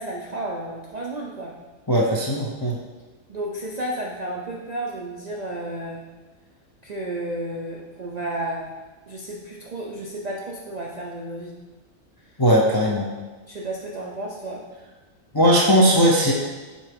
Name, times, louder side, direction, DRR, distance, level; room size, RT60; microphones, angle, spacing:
voice 1, 0.0-1.6 3.3-6.1 6.8-8.7 9.1-11.6 13.5-14.6, right 1 dB, 55° right, -2 dB, 0.4 m, -32 dB
voice 2, 1.9-2.8 12.4-13.1 15.3-16.3, equal, 35° left, -3 dB, 0.3 m, -18 dB
6.1 x 4.6 x 3.5 m, 1.3 s
omnidirectional pair, 1.5 m